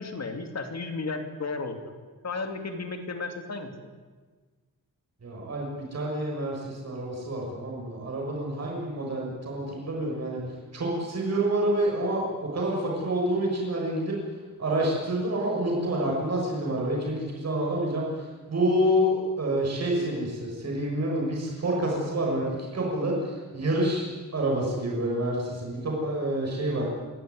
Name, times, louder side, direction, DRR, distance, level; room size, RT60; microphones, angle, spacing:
voice 1, 0.0-1.8 2.2-3.7, left 3 dB, 50° left, 6 dB, 2.8 m, -33 dB
voice 2, 5.2-10.4 10.7-14.2 14.6-18.0 18.5-26.9, right 1 dB, 50° right, -2 dB, 6.6 m, -28 dB
25.5 x 17.0 x 9.7 m, 1.4 s
wide cardioid pair, 180°, 33 cm